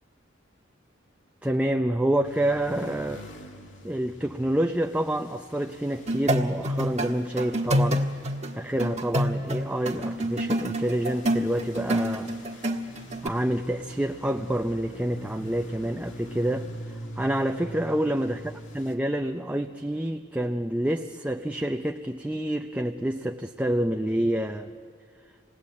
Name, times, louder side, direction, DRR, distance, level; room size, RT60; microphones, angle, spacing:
voice 1, 1.4-3.2 3.8-8.1 8.6-12.3 13.2-24.7, right 1 dB, 10° right, 5 dB, 0.5 m, -28 dB
sound 1, 2.2-19.0, equal, 90° left, 2.2 m, -44 dB
sound 2, 6.1-13.3, equal, 40° right, 1.6 m, -27 dB
27.5 x 19.5 x 8.5 m, 2.3 s
head